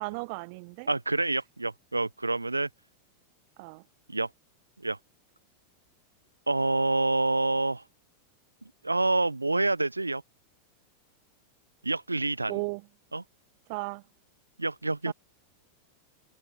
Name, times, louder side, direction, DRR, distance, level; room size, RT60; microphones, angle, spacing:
voice 1, 0.0-0.9 3.6-3.8 12.5-12.8 13.7-14.0 15.1-15.2, right 32 dB, 45° right, 1.1 m, -35 dB
voice 2, 0.9-2.7 4.1-4.3 4.8-5.0 6.5-7.8 8.8-10.2 11.8-12.6 13.1-13.2 14.6-15.1, right 2 dB, 80° right, 1.7 m, -27 dB
figure-of-eight pair, 90°, 0 cm